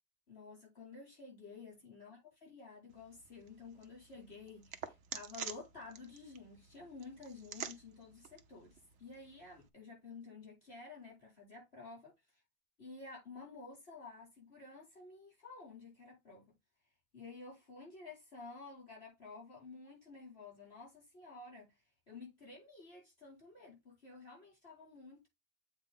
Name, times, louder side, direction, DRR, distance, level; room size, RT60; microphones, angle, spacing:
voice 1, 0.3-12.1 12.8-16.5 17.1-25.3, left 4 dB, 60° left, 5.1 m, -52 dB
sound 1, 2.9-9.7, right 7 dB, 90° right, 1.1 m, -50 dB
8.0 x 4.3 x 3.8 m
omnidirectional pair, 1.2 m